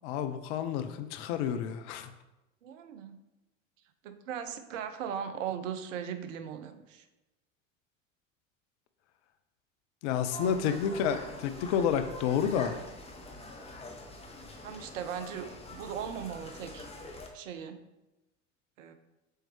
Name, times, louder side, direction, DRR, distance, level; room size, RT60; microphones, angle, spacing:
voice 1, 0.0-2.1 10.0-12.8, left 8 dB, 60° left, 10 dB, 0.7 m, -30 dB
voice 2, 2.6-3.2 4.0-7.1 14.6-16.9 17.3-17.8 18.8-18.9, right 8 dB, 70° right, 9 dB, 0.7 m, -38 dB
sound 1, 10.3-17.3, left 2 dB, 15° left, 0.9 m, -45 dB
6.5 x 4.5 x 3.2 m, 1.0 s
hypercardioid pair, 75°, 39 cm